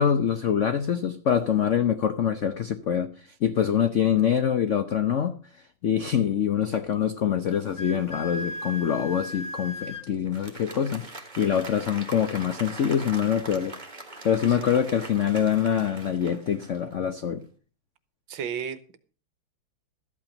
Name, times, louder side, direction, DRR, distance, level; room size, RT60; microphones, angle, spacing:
voice 1, 0.0-5.3 5.8-13.8 14.2-17.4, left 8 dB, 70° left, 10 dB, 0.7 m, -25 dB
Wind instrument woodwind instrument, 7.5-10.1, left 1 dB, 35° left, 1.6 m, -37 dB
Applause, 10.1-17.1, right 2 dB, 25° right, 1.6 m, -42 dB
voice 2, 18.3-19.0, right 8 dB, 75° right, 13 dB, 1.7 m, -33 dB
13.5 x 8.6 x 5.2 m, 0.39 s
omnidirectional pair, 2.2 m